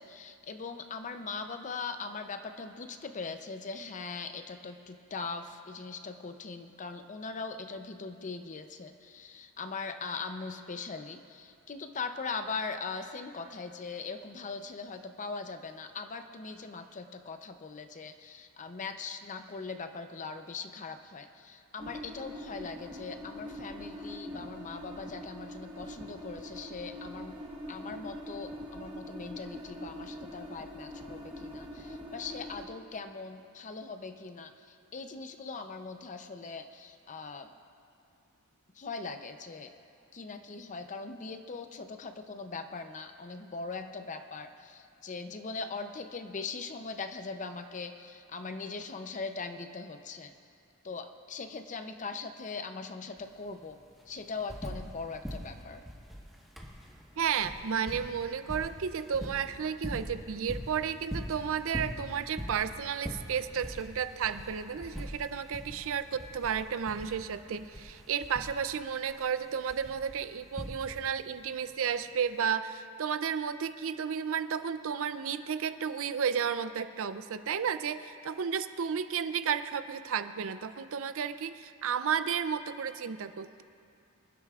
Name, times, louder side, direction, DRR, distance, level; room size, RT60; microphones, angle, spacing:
voice 1, 0.0-27.4 27.7-37.5 38.7-39.7 40.1-50.3 50.8-53.8 54.1-55.8, left 4 dB, 35° left, 7 dB, 0.6 m, -40 dB
sound 1, 21.8-32.6, equal, 25° right, 1.3 m, -43 dB
sound 2, 53.2-53.3 53.5-55.0 55.2-71.2 72.3-72.4, equal, ahead, 1.3 m, -42 dB
voice 2, 57.2-83.6, right 7 dB, 65° right, 12 dB, 0.5 m, -32 dB
24.5 x 11.5 x 2.4 m, 2.4 s
head